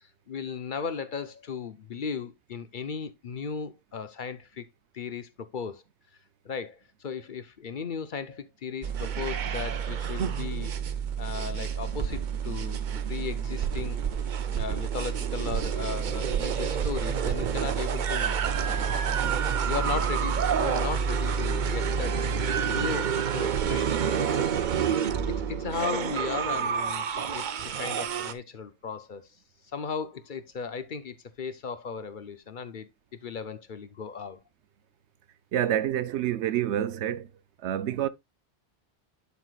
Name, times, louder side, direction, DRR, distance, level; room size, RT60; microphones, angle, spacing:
voice 1, 0.0-4.7 4.9-5.8 6.4-10.7 11.2-14.0 14.5-19.2 19.6-24.3 25.3-29.3 29.7-34.4, left 6 dB, 55° left, 0.8 m, -36 dB
sound 1, 8.8-28.3, right 7 dB, 50° right, 0.7 m, -28 dB
voice 2, 35.5-37.3 37.6-38.1, right 11 dB, 80° right, 0.9 m, -27 dB
11.5 x 4.8 x 2.3 m
omnidirectional pair, 1.1 m